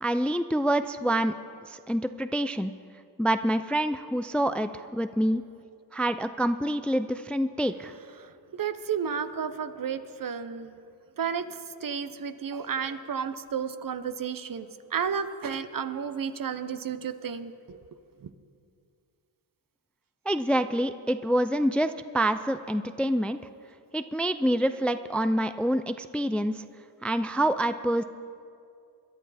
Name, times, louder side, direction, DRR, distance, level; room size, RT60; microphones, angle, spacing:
voice 1, 0.0-1.3 1.7-2.7 3.2-5.4 5.9-7.9 20.3-23.4 23.9-26.6 27.0-28.0, right 1 dB, 5° left, 11 dB, 0.4 m, -26 dB
voice 2, 8.5-10.7 11.2-11.5 11.8-17.8 18.2-18.3, right 7 dB, 50° right, 11 dB, 0.9 m, -32 dB
22.0 x 11.0 x 4.2 m, 2.4 s
cardioid pair, 65°, 43 cm